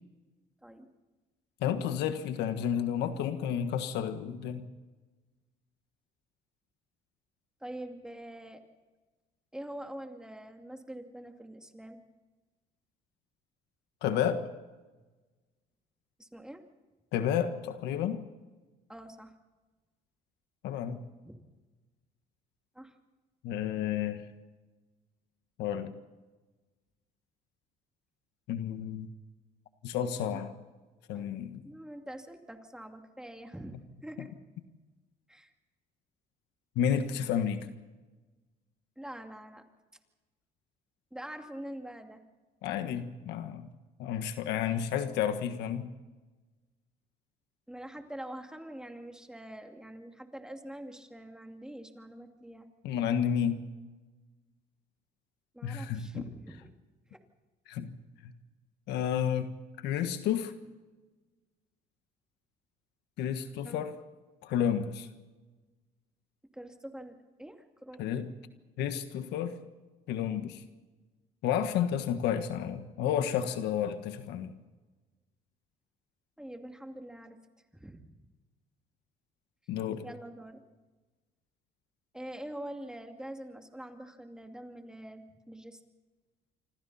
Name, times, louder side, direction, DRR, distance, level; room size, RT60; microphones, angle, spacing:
voice 1, 1.6-4.6 14.0-14.4 17.1-18.2 20.6-21.0 23.4-24.2 25.6-25.9 28.5-29.1 29.8-30.5 31.1-31.6 36.7-37.7 42.6-43.7 44.0-45.9 52.8-53.6 55.6-56.2 57.7-57.9 58.2-58.3 58.9-59.5 59.8-60.5 63.2-63.9 64.4-65.1 68.0-68.3 68.8-69.6 70.1-70.6 71.4-74.5 79.7-80.0, left 9 dB, 85° left, 9 dB, 1.5 m, -31 dB
voice 2, 7.6-8.6 9.5-12.0 16.2-16.6 18.9-19.3 21.2-21.4 22.7-23.0 30.2-30.4 31.1-31.3 31.6-34.3 35.3-35.5 39.0-39.7 41.1-42.2 47.7-52.7 55.5-56.7 57.1-57.2 63.6-63.9 66.5-68.0 76.4-77.4 77.7-78.2 80.0-80.6 82.1-85.8, right 1 dB, 5° right, 4 dB, 2.5 m, -45 dB
27.5 x 25.5 x 4.3 m, 1.3 s
cardioid pair, 110°, 17 cm